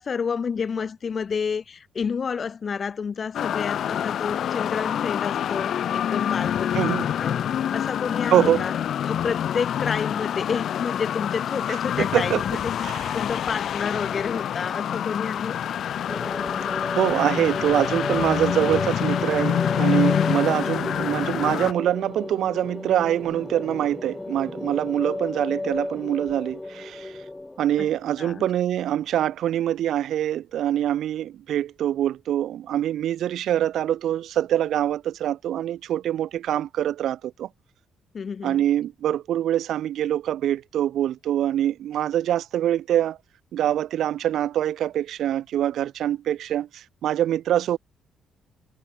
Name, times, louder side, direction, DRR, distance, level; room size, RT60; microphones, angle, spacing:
voice 1, 0.0-7.4 7.7-8.8 9.0-12.6 12.9-15.6 20.2-20.4 27.8-27.9 28.2-28.5 38.1-38.6, left 6 dB, 45° left, 1.5 m, -30 dB
sound 1, 3.3-21.7, left 9 dB, 65° left, 0.5 m, -27 dB
voice 2, 6.7-7.1 8.3-8.6 12.0-12.4 12.8-12.9 16.7-27.2 27.6-37.5 38.4-43.2 43.5-47.8, right 11 dB, 75° right, 0.6 m, -24 dB
sound 2, 16.1-28.3, left 2 dB, 15° left, 0.9 m, -33 dB
cardioid pair, 90°, 0 cm